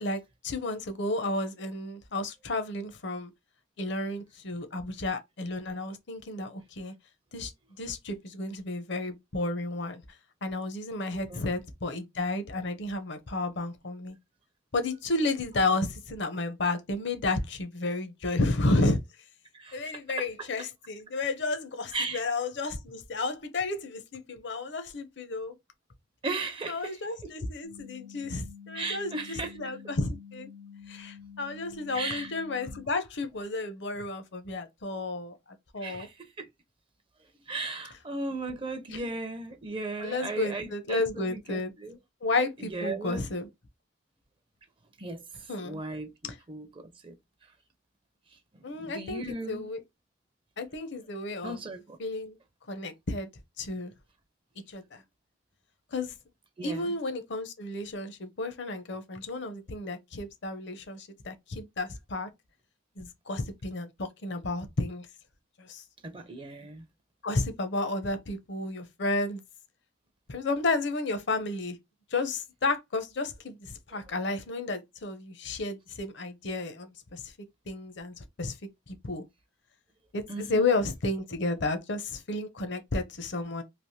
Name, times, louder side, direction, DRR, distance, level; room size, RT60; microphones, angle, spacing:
voice 1, 0.0-3.3 3.8-6.9 7.3-7.5 7.8-10.0 10.4-14.2 14.7-19.0 19.7-25.5 26.7-30.5 30.9-35.3 35.7-36.1 38.9-39.1 40.0-41.7 42.2-43.5 45.5-45.8 48.6-49.8 50.6-51.6 52.0-52.4 52.7-53.3 53.6-53.9 54.7-55.0 55.9-56.1 56.6-62.3 63.0-65.1 65.6-65.8 67.2-69.4 70.3-71.8 72.1-77.3 77.7-78.6 78.9-79.2 80.1-83.6, left 2 dB, 60° left, 0.7 m, -32 dB
voice 2, 11.1-11.4 19.5-19.8 20.2-20.3 21.9-22.2 26.2-27.0 27.2-27.3 28.7-29.5 31.9-32.3 35.8-36.5 37.5-42.0 42.6-43.2 45.0-45.2 45.6-47.2 48.8-49.7 51.4-52.0 56.6-56.9 66.0-66.9 80.3-80.7, right 2 dB, 25° right, 0.4 m, -36 dB
sound 1, 27.6-32.9, left 7 dB, 60° right, 0.7 m, -48 dB
3.3 x 2.5 x 2.7 m
head